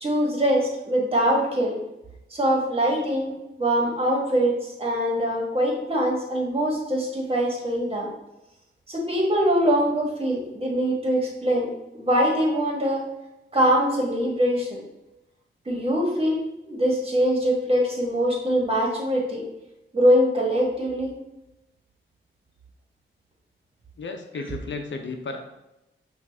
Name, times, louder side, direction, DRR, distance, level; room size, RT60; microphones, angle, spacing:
voice 1, 0.0-1.8 2.3-8.1 8.9-13.0 13.5-14.8 15.6-19.4 19.9-21.1, equal, 30° right, -2 dB, 1.4 m, -23 dB
voice 2, 24.0-25.4, left 3 dB, 65° left, 4 dB, 0.7 m, -33 dB
5.9 x 2.6 x 3.4 m, 0.93 s
cardioid pair, 75°, 21 cm